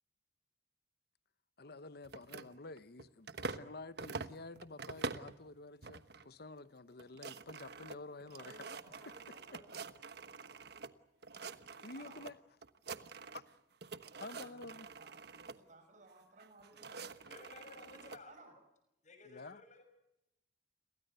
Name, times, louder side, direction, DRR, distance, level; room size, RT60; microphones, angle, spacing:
voice 1, 1.6-8.7 11.8-12.4 13.3-13.4 14.2-14.9 19.2-19.6, left 3 dB, 60° left, 0.9 m, -50 dB
sound 1, 2.0-3.7 4.0-5.4 5.8-6.3 6.6-6.7 6.9-10.9 11.2-12.3 12.6-13.5 13.8-15.6 16.4-18.2, right 4 dB, 65° right, 1.2 m, -46 dB
voice 2, 8.4-9.9 11.9-12.2 14.3-17.2 18.3-18.5, right 2 dB, 45° right, 6.6 m, -59 dB
voice 3, 17.3-18.3 19.0-19.8, left 3 dB, 45° left, 6.4 m, -55 dB
30.0 x 23.0 x 6.8 m
head